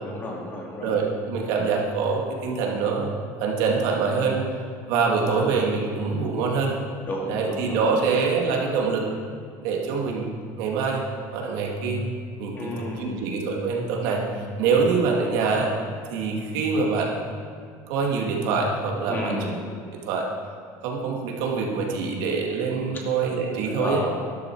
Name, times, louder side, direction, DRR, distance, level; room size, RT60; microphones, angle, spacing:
voice 1, 0.0-0.9 5.2-5.6 7.1-8.0 12.5-13.3 19.0-19.6 23.6-24.1, left 1 dB, 25° left, -1 dB, 2.2 m, -32 dB
voice 2, 0.8-3.1 3.4-4.4 4.9-6.7 7.3-9.1 9.6-10.3 10.6-11.0 11.3-12.0 12.4-15.7 16.1-17.1 17.9-19.5 20.1-20.3 20.8-24.0, right 4 dB, 65° right, -1 dB, 2.3 m, -25 dB
12.5 x 12.0 x 4.7 m, 2.3 s
cardioid pair, 165°, 8 cm